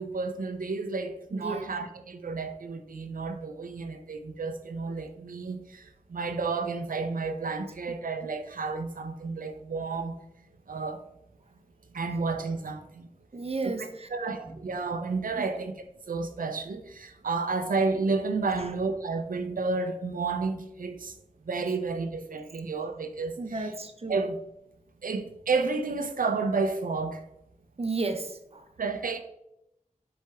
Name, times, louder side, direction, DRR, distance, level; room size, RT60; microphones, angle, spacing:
voice 1, 0.0-10.1 10.7-11.0 11.9-13.1 13.8-15.7 16.1-21.1 21.5-23.7 24.1-24.4 25.0-27.2 28.8-29.2, right 4 dB, 85° right, 0.7 m, -31 dB
voice 2, 1.3-1.7 13.3-14.1 14.5-14.6 15.4-15.5 23.4-24.2 27.8-28.6, right 3 dB, 45° right, 0.9 m, -33 dB
7.5 x 4.4 x 3.6 m
wide cardioid pair, 55°, 14 cm